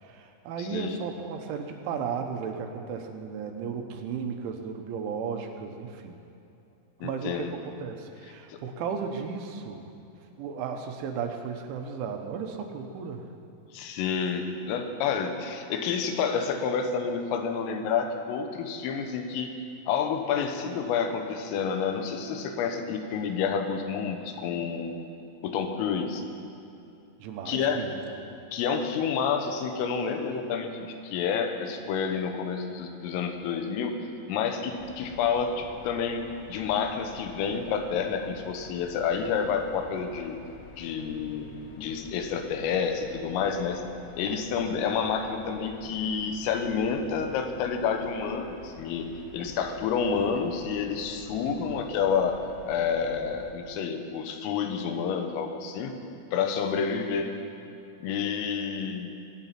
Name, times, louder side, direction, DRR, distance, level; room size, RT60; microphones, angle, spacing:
voice 1, 0.0-6.2 7.0-9.9 10.4-13.3 27.2-28.0 51.5-51.6 56.8-56.9, right 6 dB, 75° right, 4 dB, 3.3 m, -35 dB
voice 2, 0.6-1.1 7.0-7.5 8.5-8.6 13.7-19.5 19.9-24.9 25.4-26.2 27.5-27.8 28.5-30.7 31.0-33.9 34.3-36.2 36.5-40.4 40.8-43.8 44.2-49.1 49.3-52.4 52.7-55.9 56.3-57.3 58.0-59.1, left 6 dB, 90° left, 6 dB, 3.7 m, -29 dB
sound 1, 34.8-53.5, left 4 dB, 70° left, 3.4 m, -49 dB
21.5 x 9.2 x 5.9 m, 2.8 s
omnidirectional pair, 5.7 m